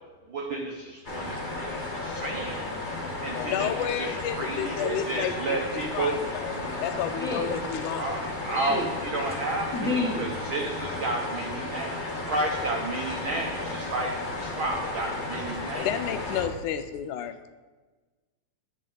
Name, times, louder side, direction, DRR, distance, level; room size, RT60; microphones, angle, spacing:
voice 1, 0.3-2.9 3.2-6.1 8.0-15.9, right 2 dB, 70° right, 1 dB, 1.2 m, -32 dB
sound 1, 1.0-16.5, left 2 dB, 30° left, 0.8 m, -34 dB
voice 2, 3.3-5.7 5.9-6.5 6.8-8.2 15.7-17.4, left 9 dB, 80° left, 9 dB, 2.0 m, -31 dB
voice 3, 7.2-7.5 8.5-8.9 9.7-10.3 11.7-11.8, left 2 dB, ahead, -5 dB, 2.3 m, -29 dB
11.0 x 8.5 x 3.9 m, 1.3 s
omnidirectional pair, 3.6 m